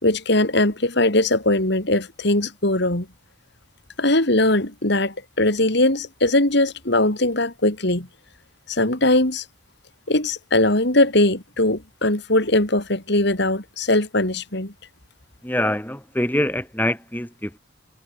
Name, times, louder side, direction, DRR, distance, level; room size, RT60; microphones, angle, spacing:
voice 1, 0.0-3.1 4.0-8.1 8.7-9.4 10.1-14.7, left 1 dB, 55° left, 3.3 m, -20 dB
voice 2, 15.4-17.6, left 1 dB, 10° left, 6.8 m, -24 dB
head